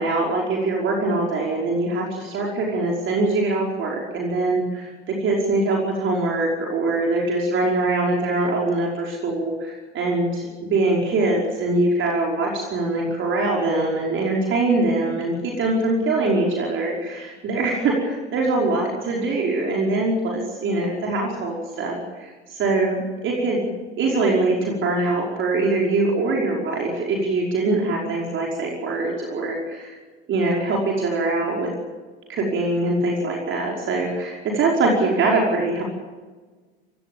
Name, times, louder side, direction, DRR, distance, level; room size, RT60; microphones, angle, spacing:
voice 1, 0.0-30.0 30.3-31.7 32.3-35.8, right 2 dB, 35° right, -1 dB, 5.3 m, -23 dB
25.5 x 17.0 x 7.3 m, 1.3 s
figure-of-eight pair, 75°, 33 cm